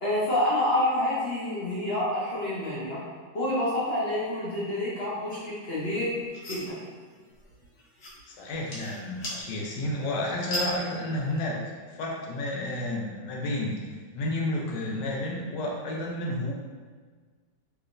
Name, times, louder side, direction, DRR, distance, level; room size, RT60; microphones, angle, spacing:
voice 1, 0.0-3.0 3.3-6.1 6.4-6.8, left 1 dB, 50° left, -9 dB, 0.7 m, -28 dB
sound 1, 5.8-11.4, left 1 dB, 90° left, 1.6 m, -39 dB
voice 2, 8.3-13.7 14.1-16.5, left 1 dB, 70° left, -2 dB, 1.2 m, -31 dB
3.2 x 2.9 x 2.5 m, 1.5 s
omnidirectional pair, 2.0 m